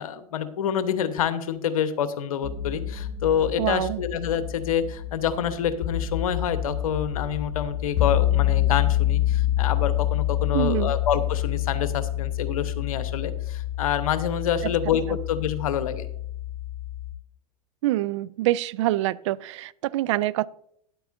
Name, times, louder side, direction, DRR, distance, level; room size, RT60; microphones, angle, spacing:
voice 1, 0.0-16.1, left 8 dB, 60° left, 1.0 m, -27 dB
sound 1, 2.4-17.1, left 12 dB, 35° left, 1.9 m, -27 dB
voice 2, 3.6-4.0 10.5-10.9 14.6-14.7 15.1-15.2 17.8-20.5, right 16 dB, 50° right, 0.4 m, -26 dB
12.5 x 9.8 x 2.6 m
figure-of-eight pair, 90°, 20 cm